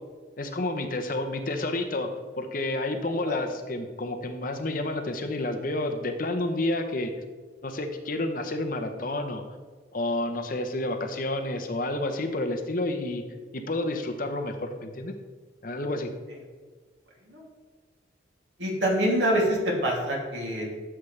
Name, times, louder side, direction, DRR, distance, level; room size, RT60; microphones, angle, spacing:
voice 1, 0.4-2.1 2.3-7.1 7.6-9.4 9.9-13.3 13.5-15.1 15.6-16.1, left 2 dB, 45° left, 6 dB, 0.8 m, -30 dB
voice 2, 18.6-20.8, right 1 dB, 75° right, -3 dB, 2.7 m, -25 dB
12.0 x 7.0 x 3.3 m, 1.5 s
head